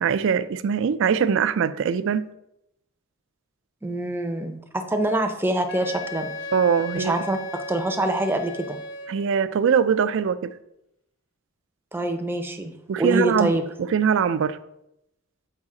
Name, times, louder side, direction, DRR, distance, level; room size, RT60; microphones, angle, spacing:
voice 1, 0.0-2.3 6.5-7.1 9.1-10.5 12.9-13.6 13.9-14.6, right 7 dB, 65° right, 0.3 m, -22 dB
voice 2, 3.8-6.3 6.9-8.8 11.9-13.6, right 1 dB, 10° right, 0.6 m, -25 dB
Wind instrument woodwind instrument, 5.7-9.4, left 1 dB, 70° left, 0.6 m, -36 dB
7.5 x 4.8 x 3.7 m
head